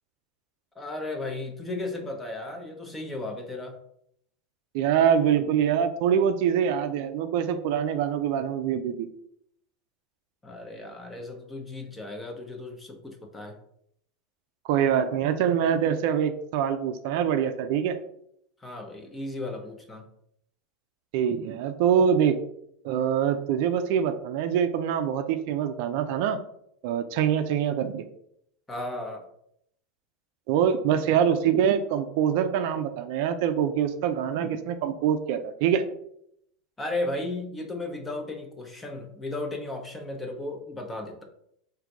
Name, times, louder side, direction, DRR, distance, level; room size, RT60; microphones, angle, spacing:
voice 1, 0.8-3.8 10.4-13.6 18.6-20.1 28.7-29.2 36.8-41.2, left 2 dB, 10° left, 3 dB, 0.8 m, -35 dB
voice 2, 4.7-9.1 14.6-18.0 21.1-22.4 22.8-26.4 26.8-28.1 30.5-35.8, right 8 dB, 65° right, 8 dB, 0.4 m, -24 dB
3.7 x 2.6 x 4.6 m, 0.73 s
supercardioid pair, 135°, 0 cm